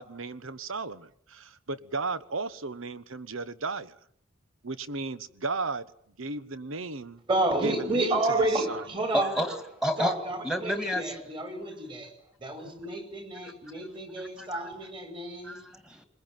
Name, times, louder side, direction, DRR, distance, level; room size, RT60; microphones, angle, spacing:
voice 1, 0.0-4.0 4.6-5.9 6.2-7.2 7.6-8.8, right 3 dB, 85° right, 15 dB, 1.3 m, -35 dB
voice 2, 7.3-9.4 10.0-12.1 12.4-15.6, right 2 dB, 25° right, 7 dB, 5.1 m, -30 dB
voice 3, 9.1-10.2 10.4-11.2 14.4-14.6 15.4-16.0, equal, 5° right, 7 dB, 2.2 m, -30 dB
21.5 x 21.0 x 9.2 m, 0.66 s
head